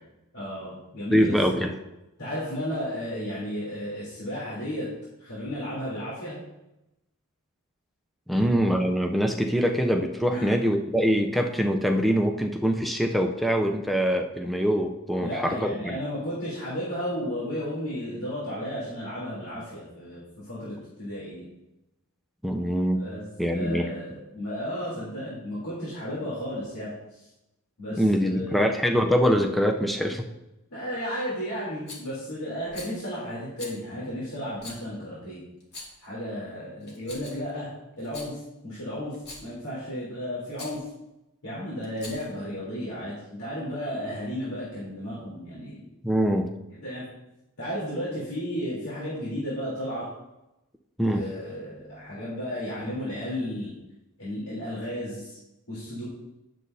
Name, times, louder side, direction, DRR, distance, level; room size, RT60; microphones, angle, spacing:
voice 1, 0.3-1.7 2.2-4.9 5.2-6.4 8.3-8.5 10.3-10.5 15.2-21.5 23.0-23.2 23.5-27.3 27.8-28.7 30.7-35.4 36.0-37.7 38.0-39.1 39.4-40.8 41.4-45.8 46.8-47.1 47.6-50.1 51.0-53.7 54.2-55.4 55.7-56.0, equal, 85° left, -9 dB, 3.3 m, -33 dB
voice 2, 1.1-1.7 8.3-16.0 22.4-23.0 23.4-23.9 28.0-30.2 46.0-46.5 51.0-51.3, equal, ahead, 3 dB, 0.5 m, -24 dB
Rattle, 31.9-32.1 32.7-33.0 33.6-33.8 34.6-34.8 35.6-36.1 36.8-37.5 38.0-38.3 39.1-39.5 40.5-40.8 41.8-42.4, left 2 dB, 50° left, 2.1 m, -42 dB
10.0 x 7.5 x 2.7 m, 0.93 s
head